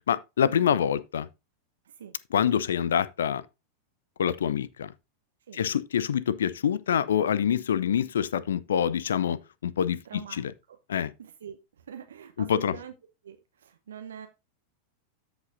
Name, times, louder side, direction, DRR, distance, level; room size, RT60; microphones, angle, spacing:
voice 1, 0.1-1.3 2.3-3.4 4.2-4.9 5.5-10.5 10.9-11.1 12.4-12.7, left 8 dB, 65° left, 0.5 m, -26 dB
voice 2, 10.0-10.8 11.2-12.9 13.2-14.3, right 8 dB, 65° right, 0.8 m, -44 dB
13.5 x 5.2 x 2.6 m
figure-of-eight pair, 90°, 0 cm